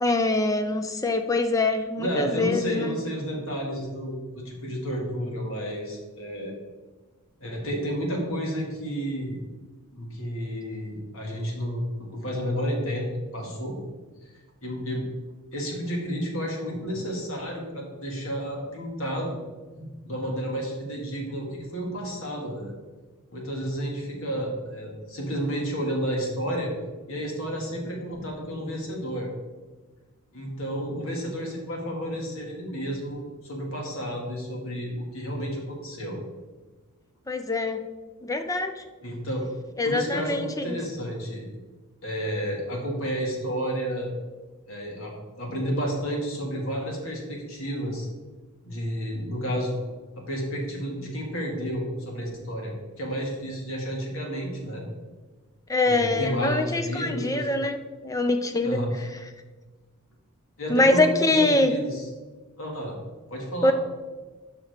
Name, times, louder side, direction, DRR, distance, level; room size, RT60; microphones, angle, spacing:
voice 1, 0.0-3.0 37.3-37.8 38.2-38.8 39.8-40.8 55.7-57.8 58.0-58.8 60.7-61.7 63.6-63.7, left 2 dB, 15° left, 7 dB, 0.4 m, -24 dB
voice 2, 2.0-6.5 7.4-9.4 9.9-13.8 14.6-15.1 15.5-19.4 19.7-22.7 23.3-26.7 27.1-29.3 30.3-36.2 39.0-39.5 39.8-41.5 42.0-44.1 44.7-48.1 48.6-49.8 50.2-54.9 55.9-57.5 58.6-59.0 60.6-62.1 62.6-62.9 63.3-63.7, equal, 65° left, -1 dB, 2.2 m, -31 dB
11.0 x 6.0 x 3.6 m, 1.3 s
head